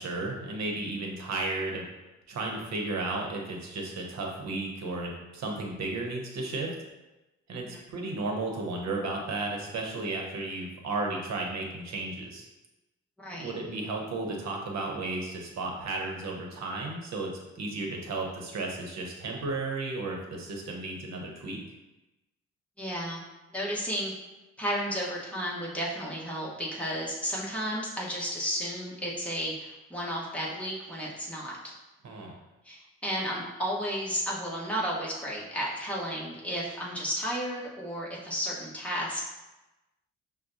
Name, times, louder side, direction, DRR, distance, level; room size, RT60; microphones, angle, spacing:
voice 1, 0.0-1.8 2.3-6.7 7.5-12.4 13.4-17.3 17.6-21.6 32.0-32.3, right 2 dB, 60° right, 1 dB, 0.9 m, -34 dB
voice 2, 13.2-13.5 22.8-23.2 23.5-24.1 24.6-31.7 32.6-39.3, equal, 5° left, -5 dB, 1.1 m, -33 dB
5.8 x 2.2 x 2.6 m, 1.0 s
cardioid pair, 90°, 30 cm